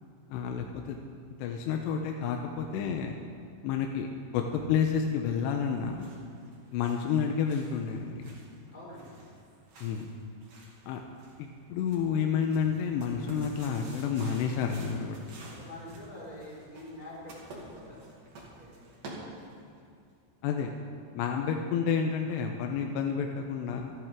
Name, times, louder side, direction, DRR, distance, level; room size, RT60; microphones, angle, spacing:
voice 1, 0.3-1.0 1.4-3.2 3.6-4.1 4.3-6.1 6.7-8.3 9.8-10.1 10.9-11.0 11.4-15.2 20.4-20.7 21.1-23.9, left 7 dB, 85° left, 2 dB, 2.9 m, -30 dB
sound 1, 5.6-19.8, right 2 dB, 55° right, 3.8 m, -50 dB
voice 2, 8.7-9.1 15.4-18.0 18.4-18.7, left 1 dB, 10° left, -8 dB, 4.3 m, -46 dB
26.5 x 11.0 x 3.6 m, 2.3 s
omnidirectional pair, 5.1 m